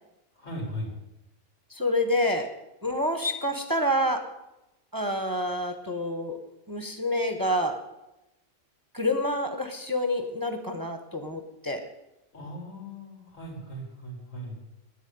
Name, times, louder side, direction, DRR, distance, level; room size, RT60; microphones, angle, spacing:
voice 1, 0.4-0.9 12.3-14.6, equal, 90° left, -1 dB, 4.6 m, -38 dB
voice 2, 1.7-2.5 2.8-4.3 4.9-6.4 6.7-7.8 8.9-11.8, left 1 dB, 20° right, 6 dB, 1.0 m, -28 dB
10.0 x 9.3 x 9.4 m, 0.93 s
omnidirectional pair, 1.3 m